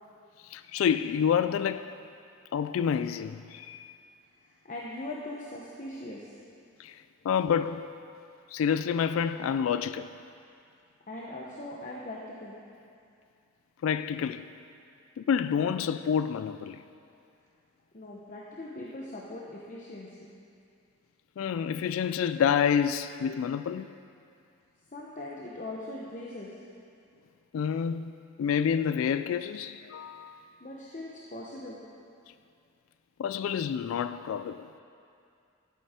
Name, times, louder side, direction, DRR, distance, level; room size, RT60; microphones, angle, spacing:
voice 1, 0.4-1.9 2.5-3.9 6.8-7.9 8.5-10.1 13.8-14.5 15.2-16.8 21.4-23.9 27.5-30.4 33.2-34.7, left 7 dB, 80° left, 0.3 m, -28 dB
voice 2, 4.6-6.3 11.1-12.5 17.9-20.3 24.9-26.6 30.6-31.8, left 1 dB, 40° left, 0.9 m, -40 dB
12.5 x 8.4 x 4.3 m
head